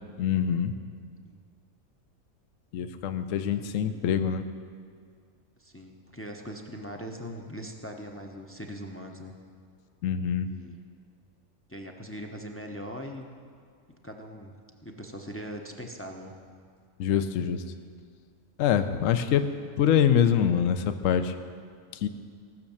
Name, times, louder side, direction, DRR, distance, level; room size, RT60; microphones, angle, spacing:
voice 1, 0.2-0.7 2.7-4.5 10.0-10.5 17.0-17.6 18.6-19.4 19.8-21.3 22.0-22.1, left 8 dB, 65° left, 9 dB, 1.0 m, -24 dB
voice 2, 3.5-4.0 5.6-9.3 10.4-10.8 11.7-13.3 14.0-14.5 14.8-16.3, equal, 15° left, 2 dB, 0.6 m, -41 dB
18.0 x 6.5 x 7.1 m, 2.2 s
omnidirectional pair, 1.6 m